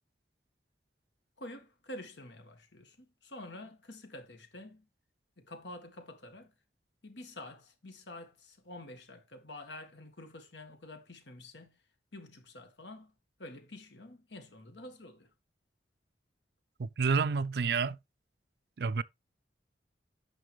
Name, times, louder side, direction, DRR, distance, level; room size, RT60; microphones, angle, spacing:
voice 1, 1.4-4.9 5.4-6.5 7.0-11.8 12.1-13.1 13.4-15.3, left 1 dB, 80° left, 1.7 m, -48 dB
voice 2, 16.8-18.0 18.8-19.0, right 5 dB, 60° right, 0.4 m, -29 dB
9.1 x 5.9 x 3.2 m
head